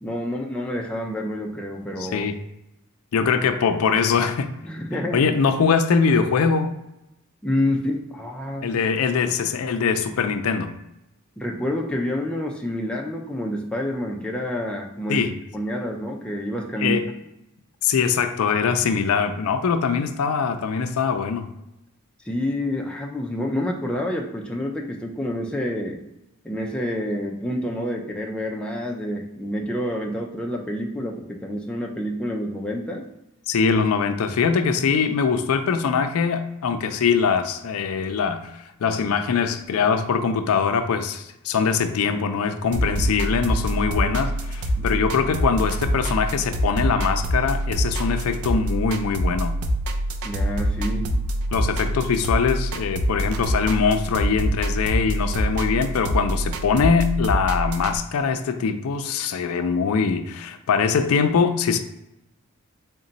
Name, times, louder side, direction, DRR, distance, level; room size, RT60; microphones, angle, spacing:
voice 1, 0.0-2.3 4.6-5.2 7.4-8.7 11.4-15.3 15.5-17.1 22.2-26.0 26.4-33.0 44.8-45.0 50.2-51.1, left 1 dB, 5° left, -1 dB, 0.4 m, -28 dB
voice 2, 2.0-2.3 3.1-4.5 5.1-6.7 8.6-10.8 15.1-15.4 16.8-17.0 17.8-21.5 33.5-49.6 51.5-61.8, left 5 dB, 75° left, 8 dB, 0.4 m, -22 dB
sound 1, 42.7-58.0, right 1 dB, 80° right, 0.4 m, -25 dB
3.9 x 2.2 x 3.9 m, 0.88 s
head